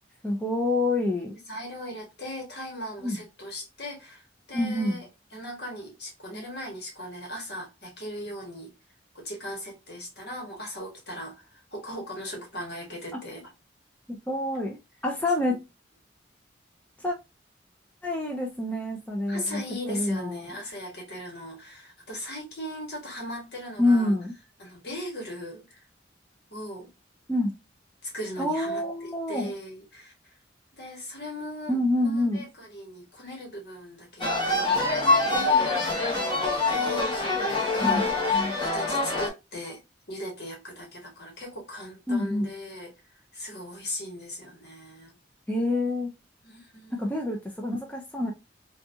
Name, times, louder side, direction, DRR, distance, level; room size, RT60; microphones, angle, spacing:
voice 1, 0.2-1.3 3.0-3.2 4.5-5.0 14.1-14.8 15.0-15.6 17.0-17.2 18.0-19.6 19.9-20.5 23.8-24.3 27.3-27.5 28.4-29.5 31.7-32.4 37.8-38.1 42.1-42.5 45.5-46.1 46.9-48.3, left 1 dB, 10° left, 0.5 m, -27 dB
voice 2, 1.5-5.0 5.3-8.7 9.1-13.5 15.5-15.6 19.3-24.1 24.6-25.8 26.5-26.9 28.0-30.1 30.7-34.8 35.3-36.2 36.7-37.1 37.7-38.1 38.6-39.8 40.1-42.9 43.3-45.1 46.4-47.3, left 1 dB, 60° left, 1.4 m, -38 dB
sound 1, 34.2-39.3, left 3 dB, 25° left, 1.0 m, -25 dB
3.9 x 2.3 x 2.7 m
head